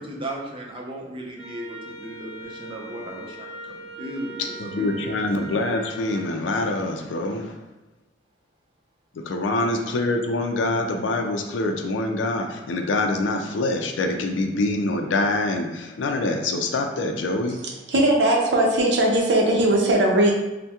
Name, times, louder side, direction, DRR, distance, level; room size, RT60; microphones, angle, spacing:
voice 1, 0.0-5.2, right 1 dB, 30° right, -1 dB, 0.5 m, -36 dB
Wind instrument woodwind instrument, 1.4-6.3, right 2 dB, 5° right, 1.3 m, -40 dB
voice 2, 4.6-7.5 9.2-17.6, left 2 dB, 85° left, 4 dB, 0.4 m, -25 dB
voice 3, 17.9-20.3, right 1 dB, 65° right, -1 dB, 0.6 m, -19 dB
3.4 x 2.1 x 2.8 m, 1.1 s
head